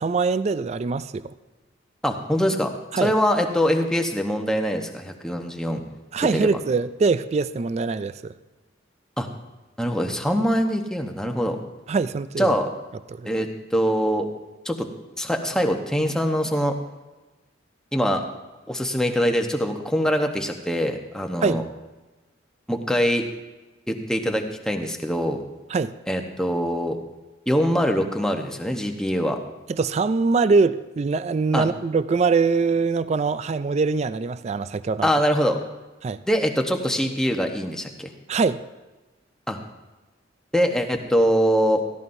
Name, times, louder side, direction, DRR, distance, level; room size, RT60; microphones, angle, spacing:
voice 1, 0.0-1.3 2.9-3.1 6.1-8.3 11.9-12.5 13.1-13.3 21.4-21.6 25.7-25.9 29.7-35.1 36.0-36.2 38.3-38.6, right 4 dB, 35° right, 14 dB, 0.3 m, -23 dB
voice 2, 2.0-2.7 3.0-5.8 6.3-6.5 9.2-9.3 9.8-11.6 12.4-12.7 13.2-14.3 14.6-14.9 15.2-16.7 17.9-18.2 18.7-21.6 22.7-23.2 23.9-25.4 26.1-27.0 27.5-29.4 31.5-31.6 35.0-35.6 36.3-38.1 39.5-39.6 40.5-41.8, equal, 5° left, 3 dB, 0.9 m, -23 dB
16.5 x 14.5 x 2.7 m, 1.1 s
head